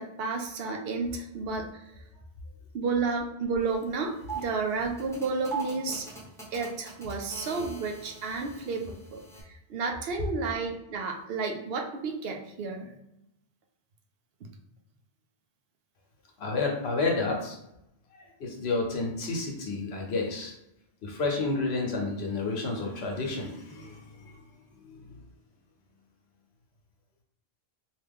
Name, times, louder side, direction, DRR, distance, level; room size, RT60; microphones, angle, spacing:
voice 1, 0.0-1.8 2.7-6.1 6.5-9.2 9.7-12.9, right 4 dB, 70° right, 2 dB, 0.8 m, -31 dB
sound 1, 3.6-3.7 4.1-9.4, right 5 dB, 5° left, 0.6 m, -41 dB
voice 2, 16.4-17.6 18.1-20.5 21.0-24.4 25.1-25.2, left 3 dB, 80° left, 1 dB, 1.0 m, -30 dB
2.9 x 2.3 x 3.4 m, 0.83 s
omnidirectional pair, 1.1 m